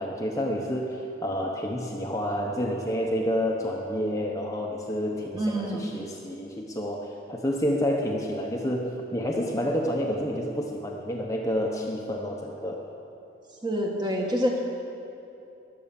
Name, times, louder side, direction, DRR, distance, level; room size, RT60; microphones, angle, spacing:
voice 1, 0.0-12.8, equal, 15° left, -1 dB, 0.9 m, -29 dB
voice 2, 5.3-5.9 13.6-14.6, equal, 20° right, 0 dB, 1.6 m, -27 dB
22.0 x 7.7 x 7.1 m, 2.8 s
head